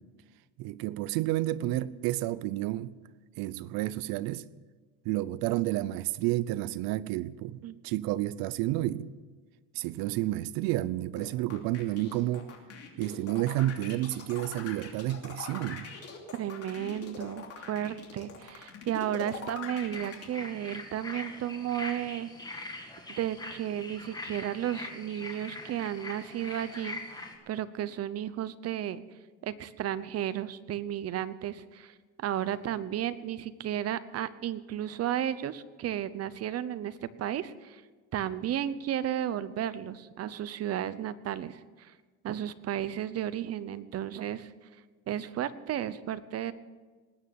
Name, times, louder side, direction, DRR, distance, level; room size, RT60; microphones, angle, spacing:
voice 1, 0.6-2.9 3.4-4.4 5.0-9.1 9.7-12.5 13.0-15.9, right 15 dB, 80° right, 0.7 m, -30 dB
sound 1, 11.2-20.2, left 5 dB, 45° left, 3.0 m, -43 dB
voice 2, 16.3-22.3 23.2-27.0 27.5-29.0 29.4-37.8 38.1-41.9 42.2-44.5 45.1-46.5, right 11 dB, 45° right, 0.9 m, -33 dB
sound 2, 19.9-27.3, left 2 dB, 10° left, 2.0 m, -42 dB
19.5 x 9.4 x 7.1 m
cardioid pair, 130°, 35 cm